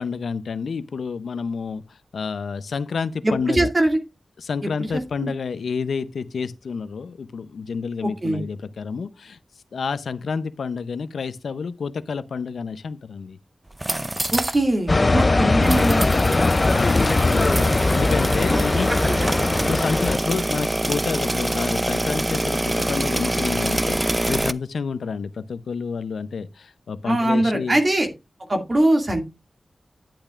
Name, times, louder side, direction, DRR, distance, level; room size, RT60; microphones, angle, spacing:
voice 1, 0.0-3.7 4.4-9.4 9.7-13.4 16.4-18.9 19.7-27.8, left 5 dB, 90° left, 0.6 m, -29 dB
voice 2, 3.2-4.0 4.8-5.3 8.2-8.4 14.3-16.1 18.5-19.3 27.0-28.1 28.5-29.2, right 1 dB, 40° right, 2.2 m, -22 dB
sound 1, 13.7-14.6 14.9-15.0 15.6-24.5, right 1 dB, 20° right, 0.6 m, -25 dB
sound 2, 14.9-20.2, left 3 dB, 40° left, 0.4 m, -20 dB
10.0 x 8.8 x 2.4 m
cardioid pair, 50°, 0 cm